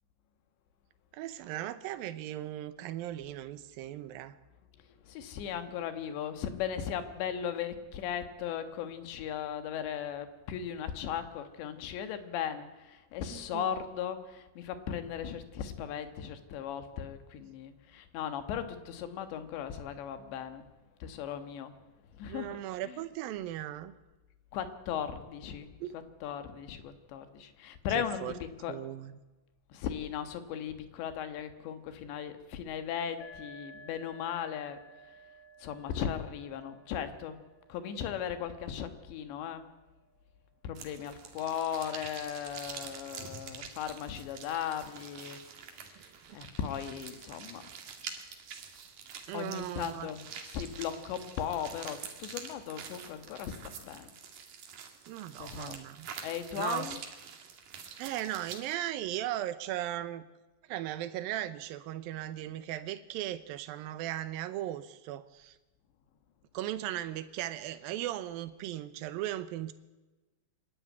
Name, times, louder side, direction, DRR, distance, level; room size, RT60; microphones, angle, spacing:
voice 1, 1.1-4.4 13.3-13.8 22.3-23.9 25.8-26.0 27.9-28.3 28.7-29.1 46.0-46.1 49.3-50.1 55.1-56.1 56.5-57.0 58.0-60.3 60.7-65.6 66.5-69.7, right 13 dB, 80° right, 12 dB, 2.1 m, -37 dB
voice 2, 5.0-20.7 21.0-21.7 22.2-22.6 22.9-23.0 24.5-28.8 29.7-34.8 35.6-37.4 37.7-39.6 40.6-45.4 45.8-46.0 46.3-47.6 49.3-54.1 55.4-55.8 56.2-57.0, left 9 dB, 75° left, 9 dB, 3.6 m, -37 dB
sound 1, 33.2-40.7, right 1 dB, 50° left, 2.4 m, -56 dB
sound 2, 40.8-58.8, right 7 dB, 55° right, 3.3 m, -46 dB
24.5 x 12.5 x 9.4 m, 1.1 s
omnidirectional pair, 5.2 m